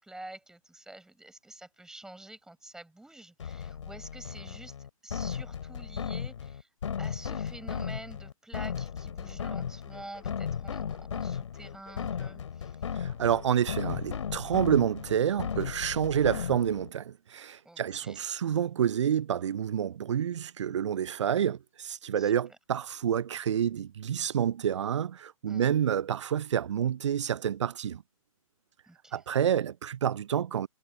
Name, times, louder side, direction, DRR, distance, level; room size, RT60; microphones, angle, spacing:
voice 1, 0.0-6.7 7.0-12.8 17.7-18.2 22.1-22.6 25.5-25.7 28.9-29.2, right 2 dB, 5° right, 7.2 m, -48 dB
sound 1, 3.4-16.9, left 7 dB, 60° left, 3.6 m, -36 dB
voice 2, 13.0-28.0 29.1-30.7, right 9 dB, 55° right, 0.8 m, -28 dB
figure-of-eight pair, 120°, 18 cm